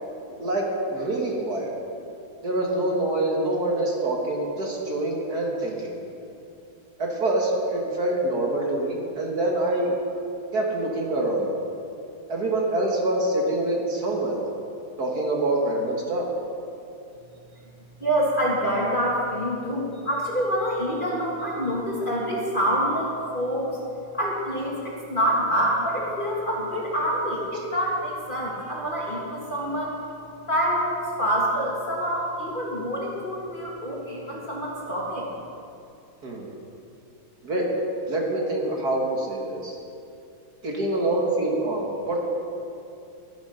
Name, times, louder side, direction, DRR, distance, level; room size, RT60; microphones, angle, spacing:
voice 1, 0.9-1.7 2.4-5.9 7.0-9.9 10.5-11.5 12.3-14.4 15.0-16.2 36.2-36.5 37.4-37.6 38.1-39.8 40.6-42.3, right 1 dB, 50° right, -2 dB, 2.1 m, -25 dB
voice 2, 18.0-23.1 23.3-23.8 24.1-30.0 30.5-35.3, equal, 25° left, -4 dB, 1.9 m, -26 dB
13.0 x 10.0 x 5.7 m, 2.6 s
omnidirectional pair, 2.3 m